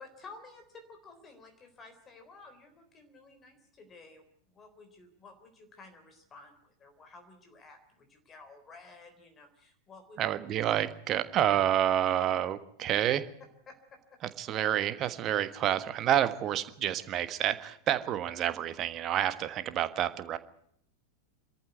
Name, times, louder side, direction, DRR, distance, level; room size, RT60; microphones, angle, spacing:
voice 1, 0.0-10.2 13.7-14.2, left 3 dB, 20° left, 5 dB, 3.8 m, -53 dB
voice 2, 10.2-13.2 14.4-20.4, right 11 dB, 30° right, 12 dB, 1.4 m, -29 dB
25.0 x 14.0 x 9.3 m, 0.68 s
figure-of-eight pair, 90°, 0 cm